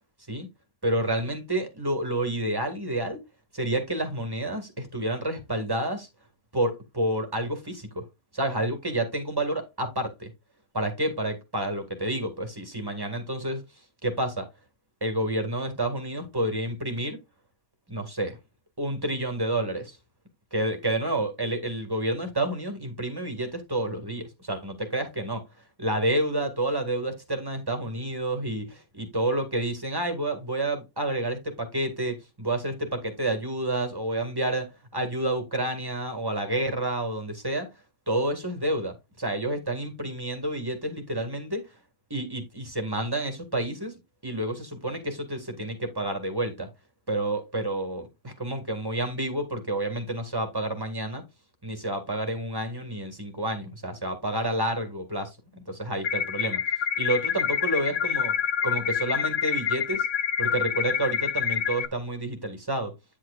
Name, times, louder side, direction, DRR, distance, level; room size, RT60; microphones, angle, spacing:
voice 1, 0.8-3.2 3.5-6.1 6.5-8.0 8.3-10.3 10.7-13.6 14.0-14.5 15.0-17.2 17.9-18.4 18.8-20.0 20.5-25.4 25.8-37.7 38.1-41.6 42.1-43.9 44.2-46.7 47.1-51.2 51.6-56.6 57.0-60.1 60.4-62.9, right 1 dB, 20° right, 2.0 m, -29 dB
sound 1, 56.0-61.9, left 8 dB, 80° left, 1.2 m, -27 dB
9.8 x 7.7 x 2.5 m
omnidirectional pair, 1.2 m